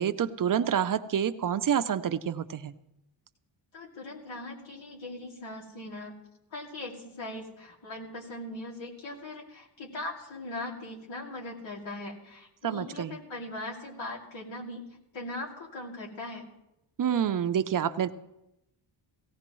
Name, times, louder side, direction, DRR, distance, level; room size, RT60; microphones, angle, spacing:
voice 1, 0.0-2.7 12.6-13.1 17.0-18.1, right 8 dB, 45° right, 11 dB, 0.5 m, -28 dB
voice 2, 3.7-6.1 6.5-14.8 15.1-16.5, left 2 dB, 75° left, -2 dB, 2.6 m, -40 dB
17.5 x 15.5 x 3.1 m, 0.88 s
wide cardioid pair, 155°, 47 cm